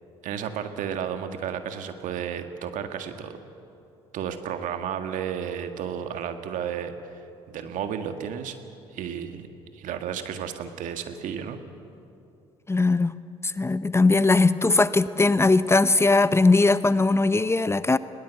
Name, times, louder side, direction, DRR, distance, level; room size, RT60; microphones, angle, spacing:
voice 1, 0.2-3.4 4.1-6.9 7.5-8.6 8.9-9.5 9.7-11.6, right 8 dB, 65° right, 7 dB, 1.8 m, -32 dB
voice 2, 12.7-13.1 13.4-18.0, left 3 dB, 20° left, 14 dB, 0.8 m, -20 dB
20.5 x 19.5 x 8.2 m, 2.7 s
hypercardioid pair, 55°, 14 cm